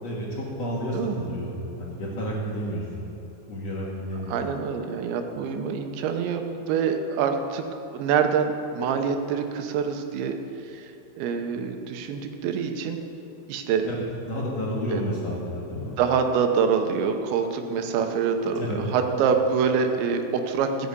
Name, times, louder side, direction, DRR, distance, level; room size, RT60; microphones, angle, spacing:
voice 1, 0.0-3.1 3.5-4.3 13.8-14.0 14.3-16.0 18.6-18.8, equal, 55° left, -5 dB, 2.1 m, -31 dB
voice 2, 4.3-7.6 7.9-10.4 10.6-10.9 11.2-13.0 13.5-13.9 14.9-15.0 16.0-18.6 18.9-20.9, right 6 dB, 85° right, 6 dB, 3.2 m, -25 dB
14.5 x 6.9 x 8.2 m, 2.9 s
omnidirectional pair, 5.1 m